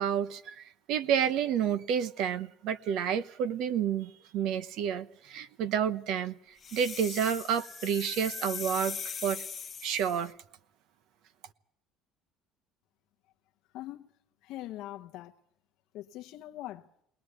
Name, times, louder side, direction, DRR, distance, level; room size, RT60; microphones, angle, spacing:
voice 1, 0.0-6.4 6.7-9.4 9.8-10.3, right 8 dB, 55° right, 1.0 m, -30 dB
sound 1, 6.6-10.3, left 6 dB, 20° left, 1.2 m, -40 dB
voice 2, 13.7-14.1 14.4-15.3 15.9-16.9, left 14 dB, 55° left, 1.0 m, -42 dB
21.5 x 20.0 x 8.2 m
cardioid pair, 170°, 0 cm